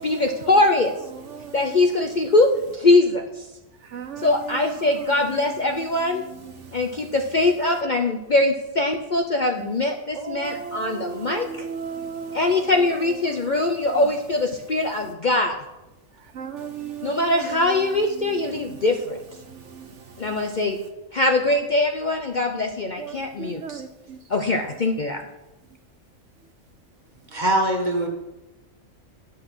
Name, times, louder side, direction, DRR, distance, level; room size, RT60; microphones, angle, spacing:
voice 1, 0.0-0.9 1.5-3.4 4.2-6.2 6.7-11.6 12.3-15.6 17.0-19.2 20.2-20.8 21.1-23.8 24.3-25.2, left 2 dB, 45° left, 0.7 m, -22 dB
voice 2, 1.1-1.7 3.9-5.1 6.1-6.7 9.6-9.7 10.1-12.6 13.2-14.0 16.3-17.5 18.2-18.8 19.5-20.4 23.0-24.2, right 6 dB, 65° right, 1.0 m, -37 dB
voice 3, 27.3-28.1, right 1 dB, 35° right, 1.7 m, -22 dB
10.0 x 6.3 x 6.1 m
omnidirectional pair, 1.4 m